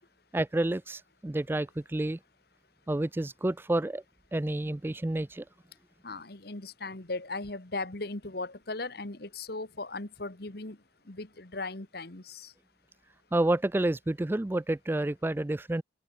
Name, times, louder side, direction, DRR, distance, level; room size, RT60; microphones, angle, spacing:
voice 1, 0.3-2.2 2.9-4.0 4.3-5.4 13.3-15.8, right 1 dB, 10° right, 0.3 m, -29 dB
voice 2, 6.0-10.8 11.1-12.5, left 3 dB, 60° left, 1.9 m, -38 dB
open air
head